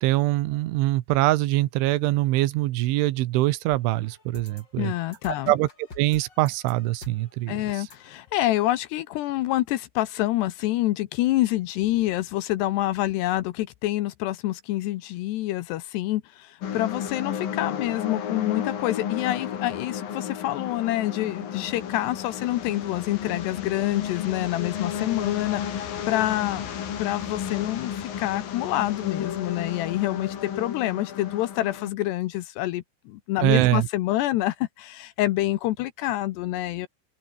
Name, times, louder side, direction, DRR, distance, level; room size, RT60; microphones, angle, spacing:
voice 1, 0.0-4.9 5.5-5.7 6.0-7.9 33.4-33.9, right 17 dB, 85° right, 3.5 m, -23 dB
sound 1, 3.7-8.7, left 3 dB, 25° left, 4.7 m, -48 dB
voice 2, 4.8-5.5 7.5-26.7 27.0-36.9, left 15 dB, 75° left, 2.8 m, -27 dB
sound 2, 16.6-31.9, left 8 dB, 55° left, 3.9 m, -33 dB
omnidirectional pair, 5.4 m